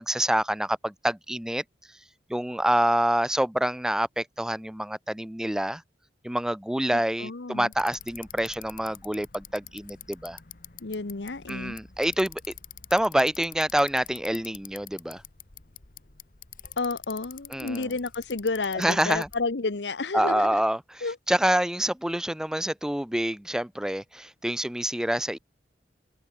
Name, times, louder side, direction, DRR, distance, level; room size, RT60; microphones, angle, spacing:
voice 1, 0.0-1.6 2.3-5.8 6.2-10.4 11.5-12.4 12.9-15.2 17.5-17.9 18.8-19.3 20.1-20.8 21.3-25.4, right 1 dB, 5° right, 0.4 m, -26 dB
voice 2, 6.9-7.7 10.8-11.8 16.8-20.6 21.0-21.2, left 3 dB, 80° left, 1.0 m, -31 dB
Bicycle, 7.7-19.5, left 10 dB, 55° left, 1.5 m, -46 dB
open air
head